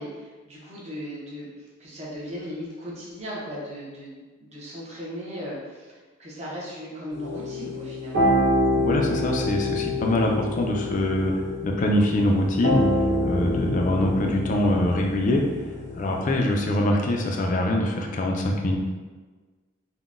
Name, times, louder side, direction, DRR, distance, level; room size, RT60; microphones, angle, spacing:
voice 1, 0.0-8.4, equal, 30° right, -5 dB, 0.7 m, -37 dB
sound 1, 7.1-16.7, left 1 dB, 60° right, 1.0 m, -27 dB
voice 2, 8.8-12.9 13.2-15.4 15.9-18.8, left 1 dB, 40° left, 1 dB, 0.3 m, -23 dB
3.7 x 2.1 x 2.4 m, 1.3 s
head